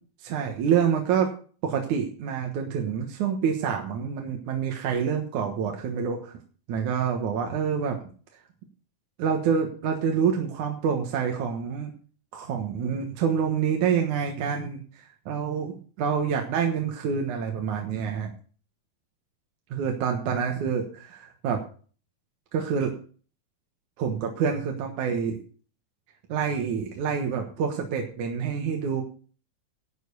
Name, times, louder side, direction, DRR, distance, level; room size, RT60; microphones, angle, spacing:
voice 1, 0.2-1.3 1.6-6.4 6.7-8.0 9.2-11.9 12.3-18.3 19.7-21.6 22.5-23.0 24.0-25.4 26.3-29.0, right 7 dB, 70° right, 2 dB, 2.7 m, -27 dB
11.5 x 7.7 x 6.7 m, 0.41 s
omnidirectional pair, 3.6 m